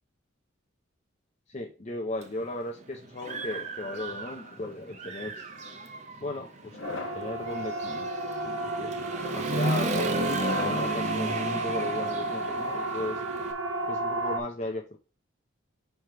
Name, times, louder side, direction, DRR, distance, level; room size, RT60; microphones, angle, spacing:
voice 1, 1.5-5.5 6.2-8.1 8.4-13.2 13.9-15.0, left 2 dB, 35° left, 1 dB, 0.6 m, -36 dB
Human voice / Motorcycle, 2.2-2.3 2.8-4.6 4.9-13.5, right 2 dB, 35° right, 0.5 m, -34 dB
sound 1, 3.2-4.6 5.4-5.8 6.6-7.3 8.0-8.3 9.2-11.1, left 4 dB, 65° left, 0.9 m, -40 dB
Siren, 6.8-14.4, right 2 dB, 80° right, 0.8 m, -32 dB
6.4 x 3.3 x 4.4 m, 0.35 s
head